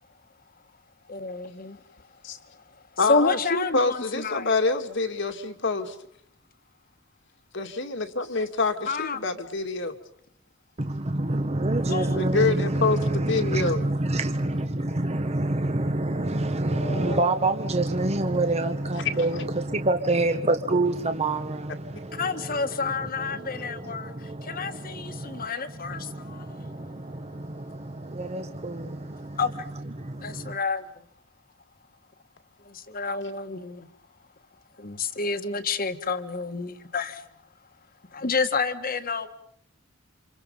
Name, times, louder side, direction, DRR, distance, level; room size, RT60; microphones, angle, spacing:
voice 1, 1.1-1.8 2.5-2.6 3.0-4.5 8.9-9.2 11.9-12.3 16.7-17.2 22.1-26.8 29.4-29.7 30.2-30.9 32.6-33.9 34.8-37.2 38.1-39.3, left 4 dB, 45° left, 1.6 m, -29 dB
voice 2, 3.0-6.0 7.5-9.9 12.1-13.0 13.3-13.8 19.0-19.2, left 3 dB, 65° left, 2.2 m, -26 dB
voice 3, 10.8-29.4 30.0-30.6, right 2 dB, 30° right, 1.1 m, -27 dB
29.0 x 27.0 x 5.5 m
head